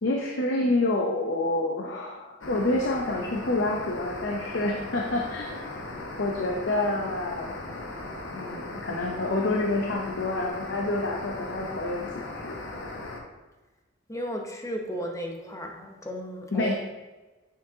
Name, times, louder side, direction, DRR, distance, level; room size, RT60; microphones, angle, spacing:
voice 1, 0.0-5.5 6.2-7.5 8.3-12.6 16.5-16.7, left 2 dB, 65° left, 0 dB, 0.7 m, -28 dB
sound 1, 2.4-13.2, left 2 dB, 85° left, 1.0 m, -38 dB
voice 2, 14.1-16.7, equal, 15° left, 1 dB, 0.8 m, -34 dB
7.4 x 6.2 x 2.8 m, 1.2 s
head